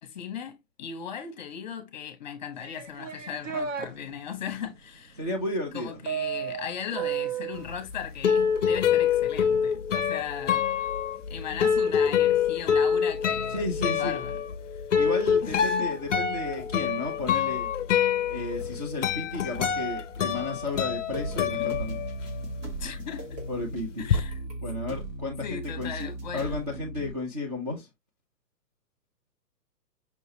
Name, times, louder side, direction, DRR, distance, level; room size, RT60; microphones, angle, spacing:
voice 1, 0.0-5.2 5.7-10.6 11.3-14.4 14.7-14.8 15.4-15.9 21.5-21.8 22.8-23.4 24.0-24.4 25.4-26.6, left 8 dB, 30° left, 0.8 m, -38 dB
sound 1, 2.6-3.9 6.1-7.7, right 8 dB, 50° right, 0.9 m, -32 dB
voice 2, 5.2-6.0 13.5-14.2 15.0-17.7 18.3-22.0 23.5-24.0 24.6-27.9, left 2 dB, 25° right, 0.6 m, -33 dB
sound 2, 7.7-22.5 22.8-24.2, left 7 dB, 50° left, 0.5 m, -26 dB
sound 3, 21.1-27.1, right 1 dB, 85° right, 2.6 m, -37 dB
5.7 x 2.9 x 2.6 m
hypercardioid pair, 165°, 49 cm